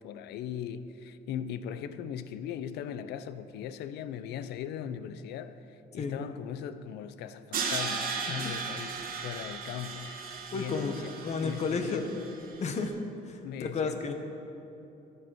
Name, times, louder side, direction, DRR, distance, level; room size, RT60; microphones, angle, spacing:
voice 1, 0.0-10.1 10.5-11.1 11.4-12.1 13.4-14.0, left 9 dB, 80° left, 12 dB, 0.6 m, -39 dB
Crash cymbal, 7.5-12.6, right 5 dB, 60° right, 1.6 m, -36 dB
voice 2, 10.5-10.9 11.2-12.0 12.6-12.9 13.3-14.1, left 4 dB, 40° left, 6 dB, 1.2 m, -32 dB
11.5 x 8.6 x 6.2 m, 2.9 s
cardioid pair, 110°, 17 cm